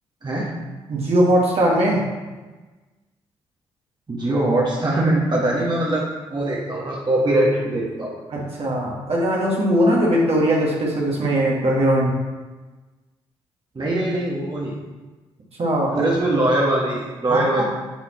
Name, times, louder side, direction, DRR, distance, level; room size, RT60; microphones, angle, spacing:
voice 1, 0.2-0.5 4.1-6.0 6.3-8.2 13.7-14.8 15.9-17.7, right 1 dB, 35° right, -4 dB, 1.5 m, -22 dB
voice 2, 0.9-2.1 8.3-12.2 15.6-16.1 17.3-17.7, right 1 dB, 50° right, -3 dB, 1.8 m, -20 dB
9.9 x 4.1 x 3.1 m, 1.2 s
hypercardioid pair, 40°, 13 cm